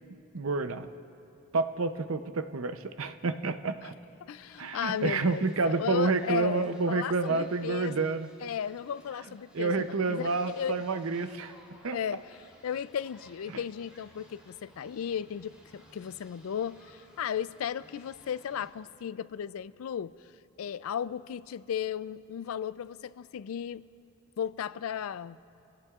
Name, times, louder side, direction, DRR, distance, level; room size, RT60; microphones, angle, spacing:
voice 1, 0.3-0.9 1.5-3.9 4.6-8.3 9.5-11.5 11.8-12.0 13.5-13.6, right 4 dB, 75° right, 10 dB, 0.6 m, -29 dB
voice 2, 4.2-8.0 8.4-10.3 10.5-10.8 11.9-12.2 12.6-20.1 20.6-23.8 24.4-25.4, left 8 dB, 75° left, 17 dB, 0.4 m, -35 dB
sound 1, 4.4-18.7, equal, 5° right, 3.0 m, -58 dB
26.5 x 17.0 x 2.4 m, 2.8 s
head